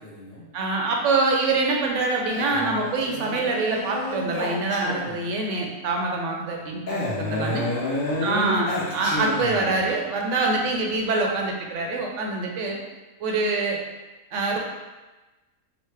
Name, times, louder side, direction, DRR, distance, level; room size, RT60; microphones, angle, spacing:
voice 1, 0.0-0.5 7.3-9.0, left 2 dB, 20° left, -7 dB, 0.5 m, -39 dB
voice 2, 0.5-7.7 8.2-12.8 13.2-13.8 14.3-14.6, right 3 dB, 65° right, 0 dB, 0.8 m, -25 dB
Male speech man speaking, 2.3-5.3 6.9-9.8, left 1 dB, 65° left, 1.1 m, -30 dB
4.0 x 2.0 x 3.2 m, 1.1 s
omnidirectional pair, 1.6 m